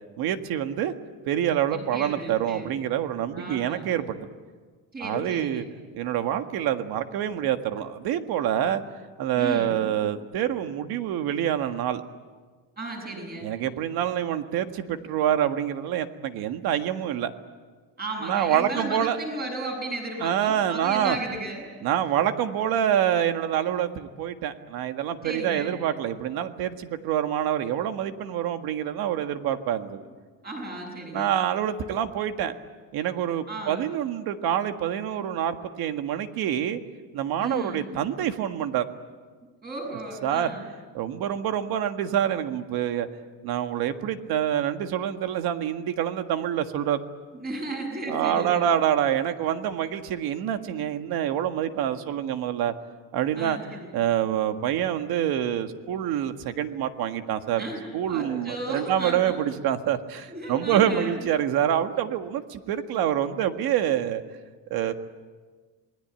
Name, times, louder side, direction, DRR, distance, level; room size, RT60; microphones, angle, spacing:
voice 1, 0.2-0.9 1.3-4.2 5.0-5.6 5.9-8.8 9.2-12.0 13.4-17.3 18.2-19.2 20.2-21.2 21.8-30.1 31.1-32.5 32.9-36.8 37.1-38.9 40.2-40.5 40.9-43.1 43.4-47.0 48.1-52.7 53.1-53.6 53.9-57.6 57.9-64.2 64.7-64.9, right 10 dB, 70° right, 8 dB, 1.8 m, -26 dB
voice 2, 1.7-2.7 3.3-3.9 4.9-5.7 9.3-9.8 12.8-13.5 18.0-21.7 25.2-25.8 30.0-30.1 30.4-31.3 33.5-33.8 36.7-36.8 37.4-37.9 39.6-40.6 47.3-48.7 53.3-53.9 57.6-57.8 58.1-59.4 60.3-61.2, right 2 dB, 25° right, 1 dB, 7.4 m, -34 dB
27.5 x 20.5 x 9.0 m, 1.5 s
cardioid pair, 165°, 37 cm